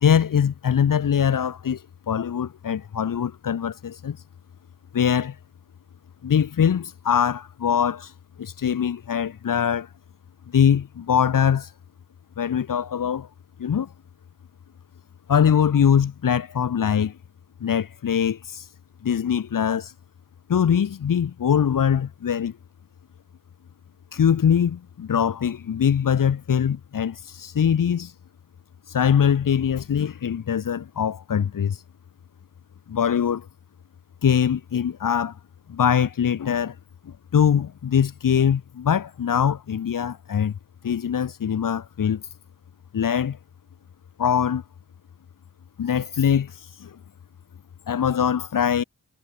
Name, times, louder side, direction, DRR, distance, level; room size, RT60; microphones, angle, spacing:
voice 1, 0.0-4.2 4.9-5.4 6.2-8.1 8.4-9.9 10.5-11.7 12.4-13.3 13.6-13.9 15.3-17.2 17.6-18.7 19.0-19.9 20.5-22.5 24.1-28.1 28.9-31.8 32.9-33.5 34.2-35.4 35.7-36.8 37.1-40.6 40.8-42.2 42.9-43.4 44.2-44.6 45.8-47.0 47.9-48.8, left 8 dB, 80° left, 1.6 m, -22 dB
cardioid pair, 75°, 33 cm